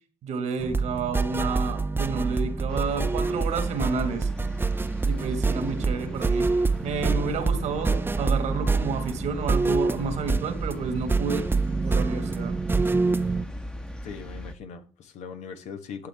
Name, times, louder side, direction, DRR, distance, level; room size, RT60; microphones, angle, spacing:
voice 1, 0.2-4.3 5.0-11.5 11.8-12.6, right 5 dB, 70° right, 1.7 m, -30 dB
sound 1, 0.6-13.4, right 3 dB, 20° right, 0.5 m, -26 dB
sound 2, 2.7-14.6, equal, 5° left, 1.1 m, -41 dB
voice 2, 14.0-16.1, left 6 dB, 75° left, 1.3 m, -40 dB
11.5 x 6.9 x 3.5 m
supercardioid pair, 60°, 12 cm